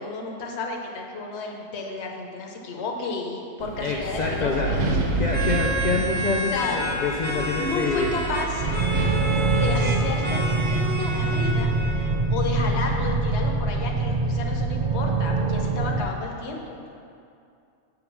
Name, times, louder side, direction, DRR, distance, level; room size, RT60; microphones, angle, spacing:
voice 1, 0.0-4.9 6.5-6.8 7.6-8.7 9.5-10.4 10.7-11.7 12.3-16.8, left 3 dB, 60° left, 1 dB, 1.1 m, -32 dB
Wind, 3.6-10.9, right 2 dB, 75° right, 1.2 m, -29 dB
voice 2, 3.8-4.7 5.2-8.1, left 4 dB, 80° left, -1 dB, 0.4 m, -26 dB
sound 1, 5.3-12.1, equal, 10° right, 0.6 m, -31 dB
sound 2, 8.6-16.0, right 3 dB, 55° right, 0.4 m, -24 dB
7.7 x 3.9 x 5.8 m, 2.5 s
omnidirectional pair, 1.3 m